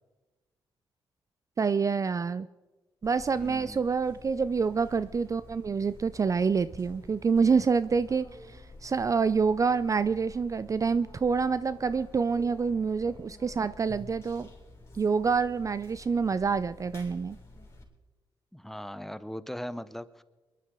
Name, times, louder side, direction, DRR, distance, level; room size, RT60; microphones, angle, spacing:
voice 1, 1.6-2.5 3.0-14.5 14.9-17.4, right 5 dB, 35° right, 15 dB, 0.4 m, -27 dB
sound 1, 3.0-17.8, left 2 dB, 30° left, 4.1 m, -50 dB
voice 2, 3.4-3.8 18.5-20.2, equal, 5° left, 13 dB, 0.8 m, -39 dB
22.5 x 11.5 x 3.8 m, 1.2 s
cardioid pair, 70°, 9 cm